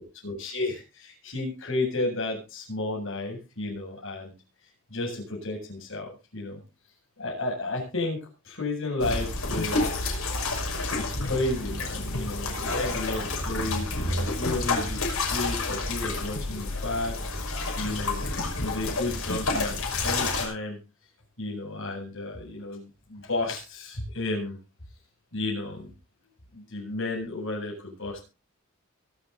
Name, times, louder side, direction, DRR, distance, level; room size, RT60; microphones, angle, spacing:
voice 1, 0.0-4.3 4.9-6.6 7.2-8.2 8.4-9.9 10.9-17.1 17.8-18.3 18.6-20.8 21.4-24.6 25.3-25.9 26.5-28.2, left 2 dB, 65° left, 0 dB, 7.8 m, -32 dB
sound 1, 9.0-20.4, left 2 dB, 85° left, 6.0 m, -29 dB
23.5 x 7.9 x 4.1 m, 0.32 s
head